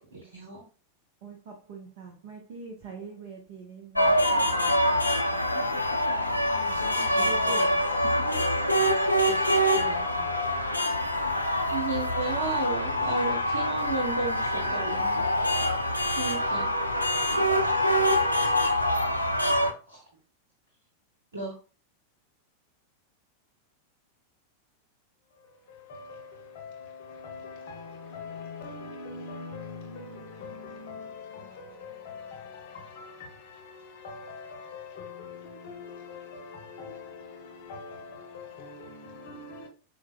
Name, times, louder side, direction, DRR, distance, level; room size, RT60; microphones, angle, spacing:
voice 1, 0.1-0.6 11.7-15.2 16.1-16.7 19.9-20.0 21.3-21.5, right 3 dB, 75° right, 0.8 m, -33 dB
voice 2, 1.2-5.1 7.2-7.8 9.3-9.4 9.8-10.3 17.3-17.4, right 4 dB, 50° right, 0.6 m, -44 dB
sound 1, 3.9-19.7, equal, 85° left, 0.4 m, -25 dB
voice 3, 6.0-7.8 25.4-39.7, left 4 dB, 50° left, 0.7 m, -43 dB
4.5 x 2.0 x 2.2 m
figure-of-eight pair, 90°, 0 cm